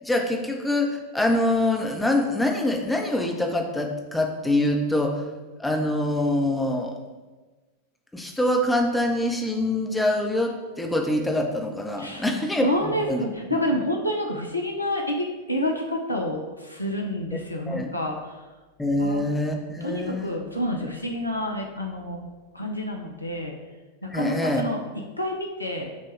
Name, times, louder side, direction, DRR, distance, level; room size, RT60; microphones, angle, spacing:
voice 1, 0.0-5.2 5.6-7.0 8.1-13.2 17.7-17.9 18.8-20.4 24.0-24.6, left 1 dB, 5° left, 2 dB, 0.6 m, -25 dB
voice 2, 12.0-18.4 19.0-19.2 19.8-23.6 24.0-24.8 25.2-25.9, left 1 dB, 85° left, 1 dB, 0.5 m, -29 dB
6.1 x 2.2 x 3.3 m, 1.2 s
figure-of-eight pair, 90°, 0 cm